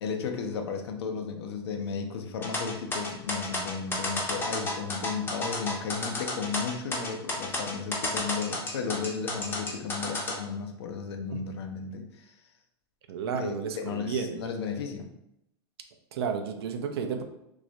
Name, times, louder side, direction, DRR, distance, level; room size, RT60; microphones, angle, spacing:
voice 1, 0.0-12.3 13.4-15.1, left 6 dB, 80° left, 4 dB, 0.4 m, -34 dB
sound 1, 2.4-10.4, left 2 dB, 15° left, 0.5 m, -32 dB
voice 2, 13.1-14.4 16.1-17.2, right 6 dB, 75° right, 6 dB, 0.4 m, -32 dB
2.3 x 2.0 x 2.7 m, 0.83 s
hypercardioid pair, 110°, 13 cm